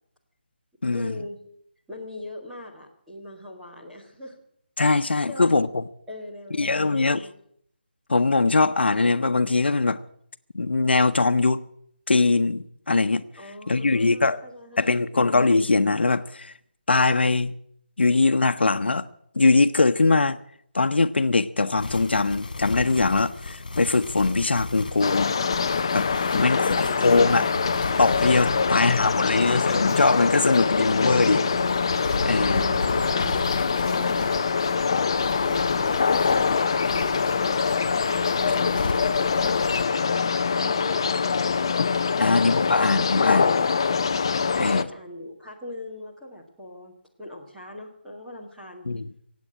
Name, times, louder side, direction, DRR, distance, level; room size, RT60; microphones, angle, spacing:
voice 1, 0.9-1.4 1.9-4.4 5.3-5.5 6.1-7.3 13.4-15.3 26.4-27.2 32.2-34.5 40.5-41.6 44.5-46.9 47.2-48.9, left 1 dB, 5° right, 1.6 m, -40 dB
voice 2, 4.8-5.8 6.6-7.2 8.1-10.0 10.5-11.6 12.1-13.2 13.7-14.4 14.8-16.5 16.9-17.5 18.0-19.1 19.3-20.4 20.7-25.4 25.9-27.4 28.0-31.4 32.2-32.6 42.2-43.5 44.6-44.8 48.9-49.0, left 3 dB, 90° left, 0.9 m, -21 dB
sound 1, 21.8-39.9, left 3 dB, 50° left, 2.9 m, -36 dB
sound 2, 25.0-44.8, left 5 dB, 30° left, 0.5 m, -24 dB
sound 3, 27.2-34.3, right 1 dB, 40° right, 2.8 m, -39 dB
17.0 x 8.4 x 9.8 m
hypercardioid pair, 175°, 6 cm